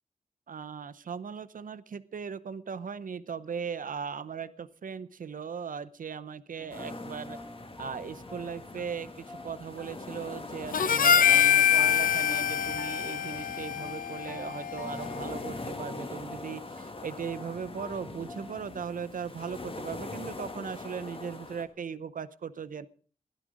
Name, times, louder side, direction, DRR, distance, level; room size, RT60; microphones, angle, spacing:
voice 1, 0.5-7.4 7.8-22.9, right 6 dB, 75° right, 13 dB, 0.7 m, -38 dB
sound 1, 6.6-18.6, left 1 dB, 10° left, 1.5 m, -47 dB
sound 2, 6.7-21.6, left 2 dB, 40° left, 2.0 m, -42 dB
Harmonica, 10.7-15.2, left 9 dB, 80° left, 0.6 m, -25 dB
16.5 x 11.5 x 5.0 m, 0.43 s
wide cardioid pair, 120°, 14 cm